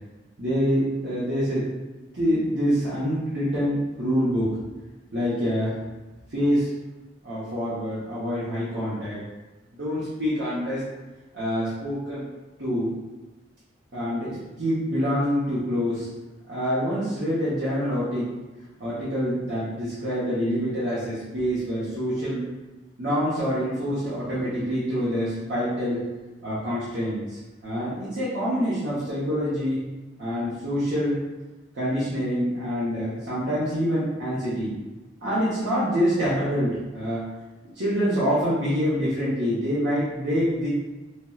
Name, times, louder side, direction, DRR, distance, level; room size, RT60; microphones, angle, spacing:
voice 1, 0.4-1.6 2.1-4.5 5.1-5.7 6.3-6.7 7.2-9.2 9.7-10.8 11.3-12.2 12.6-12.9 13.9-16.1 16.5-18.3 18.8-22.4 23.0-26.0 26.4-29.8 30.2-31.2 31.7-34.7 35.2-37.3 37.7-40.7, equal, 65° right, -10 dB, 0.8 m, -26 dB
4.2 x 2.1 x 2.3 m, 1.1 s
head